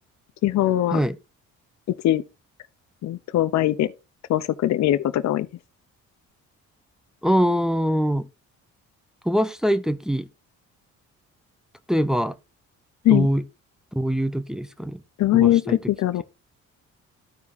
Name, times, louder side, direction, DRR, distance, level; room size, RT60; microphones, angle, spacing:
voice 1, 0.4-1.0 2.0-2.2 3.0-3.9 4.3-5.5 13.0-13.3 15.2-16.2, left 13 dB, 65° left, 0.6 m, -21 dB
voice 2, 7.2-8.3 9.2-10.3 11.9-12.3 13.1-13.4 13.9-15.0 15.3-15.8, equal, ahead, 0.7 m, -23 dB
14.0 x 4.7 x 2.6 m
cardioid pair, 90°, 30 cm